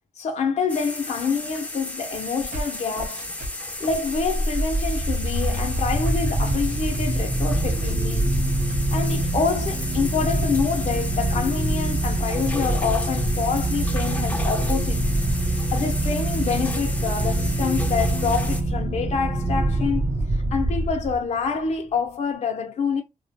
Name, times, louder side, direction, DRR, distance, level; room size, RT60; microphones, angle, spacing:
voice 1, 0.2-3.2 3.8-8.3 8.9-15.1 15.5-20.0 20.3-23.0, left 5 dB, 60° left, 0.5 m, -27 dB
sound 1, 0.7-18.6, left 1 dB, 10° left, 0.5 m, -34 dB
sound 2, 2.1-9.1, right 1 dB, 80° right, 0.7 m, -37 dB
sound 3, 4.0-21.4, right 1 dB, 35° right, 0.6 m, -24 dB
2.4 x 2.1 x 2.6 m
cardioid pair, 70°, 13 cm